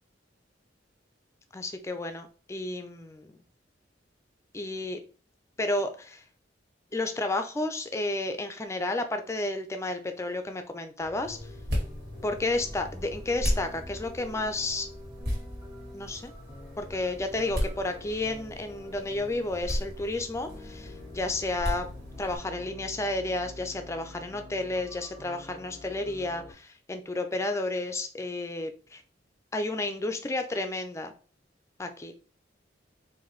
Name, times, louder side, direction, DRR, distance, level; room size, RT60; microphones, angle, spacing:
voice 1, 1.5-3.4 4.5-5.0 5.6-6.2 6.9-11.4 12.2-14.9 15.9-16.3 16.8-21.9 22.2-29.0 29.5-31.1 31.8-32.1, left 2 dB, 15° left, 7 dB, 0.4 m, -31 dB
sound 1, 11.0-26.5, left 2 dB, 20° right, 1.2 m, -47 dB
sound 2, 11.2-22.4, equal, 60° right, 1.6 m, -36 dB
4.0 x 2.6 x 3.1 m, 0.39 s
head